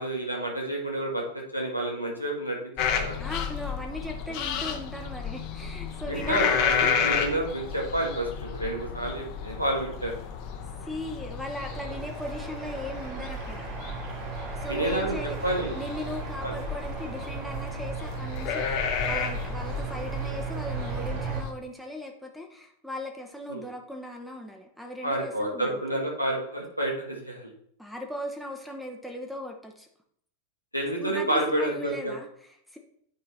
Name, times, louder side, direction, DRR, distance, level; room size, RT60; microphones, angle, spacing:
voice 1, 0.0-2.6 2.9-3.2 6.1-10.2 11.9-12.0 14.7-15.2 15.4-15.8 16.4-16.6 23.5-23.6 25.0-27.5 30.7-32.1, right 1 dB, 90° right, -1 dB, 1.9 m, -29 dB
sound 1, 2.8-21.5, left 7 dB, 45° left, 1.0 m, -32 dB
voice 2, 3.2-7.2 10.8-13.7 14.5-25.8 27.8-29.9 31.0-32.8, left 1 dB, ahead, 2 dB, 1.0 m, -38 dB
sound 2, 11.5-21.4, right 5 dB, 40° right, 2.8 m, -36 dB
9.4 x 4.4 x 4.2 m, 0.67 s
figure-of-eight pair, 90°, 0 cm